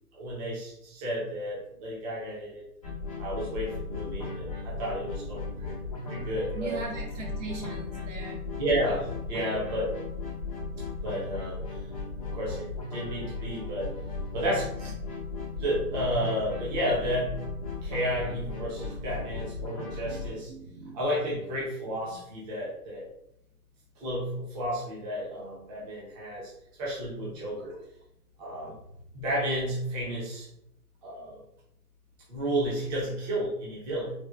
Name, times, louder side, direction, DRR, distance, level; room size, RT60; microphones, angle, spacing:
voice 1, 0.1-2.6 3.2-6.8 8.6-10.0 11.0-11.9 12.3-13.9 14.3-14.7 15.6-17.3 17.8-20.5 20.9-23.1 24.0-26.5 26.8-27.8 28.4-28.8 29.1-30.5 31.0-31.4 32.3-34.1, equal, 25° right, -5 dB, 0.8 m, -32 dB
sound 1, 2.8-20.3, left 3 dB, 25° left, 0.4 m, -36 dB
voice 2, 6.5-8.4 19.6-21.0 22.1-22.2 27.6-27.7 28.6-28.7, right 3 dB, 50° right, 0 dB, 1.1 m, -41 dB
4.3 x 2.3 x 2.2 m, 0.77 s
hypercardioid pair, 145°, 48 cm